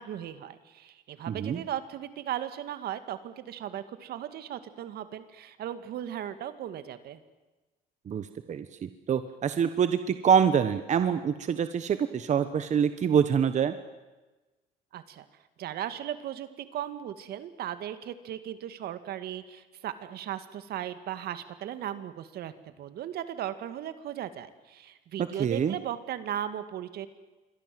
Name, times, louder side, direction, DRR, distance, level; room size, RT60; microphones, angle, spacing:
voice 1, 0.0-7.2 14.9-15.2 15.6-22.5 22.8-27.1, right 11 dB, 70° right, 11 dB, 2.1 m, -37 dB
voice 2, 1.3-1.6 8.1-13.7 25.4-25.8, right 7 dB, 45° right, 10 dB, 1.3 m, -26 dB
27.5 x 23.0 x 7.8 m, 1.2 s
cardioid pair, 110°, 17 cm